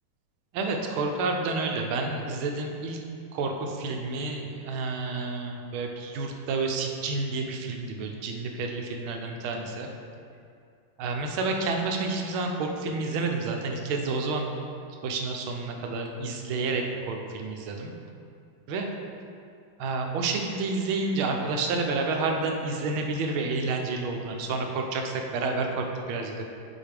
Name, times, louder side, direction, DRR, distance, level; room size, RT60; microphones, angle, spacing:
voice 1, 0.5-3.0 3.3-9.9 11.0-14.5 15.0-17.9 18.7-18.9 19.8-26.5, right 3 dB, 80° right, 2 dB, 1.5 m, -29 dB
8.8 x 4.9 x 3.4 m, 2.5 s
omnidirectional pair, 2.3 m